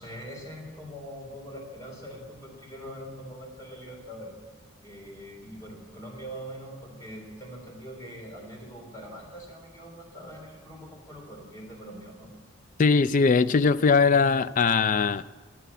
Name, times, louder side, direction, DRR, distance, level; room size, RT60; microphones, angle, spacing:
voice 1, 0.0-4.3 4.8-12.3, equal, 15° left, -1 dB, 3.5 m, -43 dB
voice 2, 12.8-15.2, left 5 dB, 40° left, 14 dB, 0.3 m, -21 dB
12.5 x 9.1 x 8.3 m, 1.3 s
head